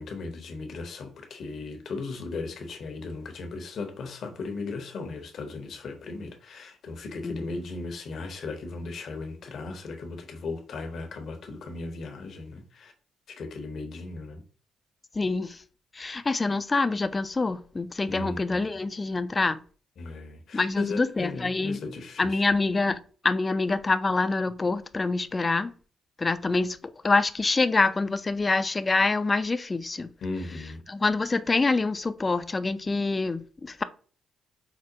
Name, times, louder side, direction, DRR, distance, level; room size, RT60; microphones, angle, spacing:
voice 1, 0.0-12.9 13.3-14.4 18.1-18.7 20.0-22.4 30.2-30.8, left 3 dB, 65° left, 0.8 m, -37 dB
voice 2, 15.1-15.6 15.9-19.6 20.5-21.8 22.2-23.0 23.2-25.7 26.2-30.1 30.9-33.8, left 3 dB, 30° left, 0.3 m, -26 dB
4.7 x 2.1 x 2.7 m
supercardioid pair, 65°, 0 cm